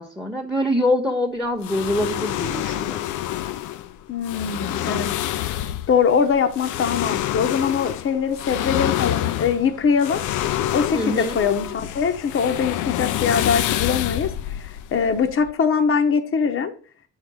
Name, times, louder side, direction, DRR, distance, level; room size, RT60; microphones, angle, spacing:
voice 1, 0.0-3.0 10.9-11.4, left 1 dB, ahead, 3 dB, 1.1 m, -24 dB
sound 1, 1.6-15.5, left 13 dB, 75° left, 0.5 m, -27 dB
voice 2, 4.1-5.1 5.9-10.2 10.7-16.7, left 6 dB, 45° left, 6 dB, 0.9 m, -22 dB
8.1 x 3.4 x 6.2 m, 0.40 s
cardioid pair, 90°, 30 cm